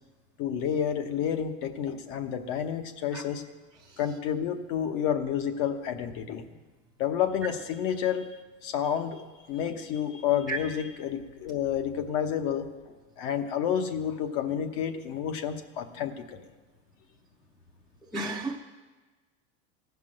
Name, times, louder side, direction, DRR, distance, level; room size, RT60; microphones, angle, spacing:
voice 1, 0.4-3.4 4.0-6.6 7.0-8.3 8.6-16.5, left 9 dB, 50° left, 8 dB, 1.0 m, -30 dB
voice 2, 18.1-18.6, right 3 dB, ahead, -6 dB, 0.5 m, -31 dB
15.5 x 6.0 x 8.7 m, 1.3 s
supercardioid pair, 165°, 36 cm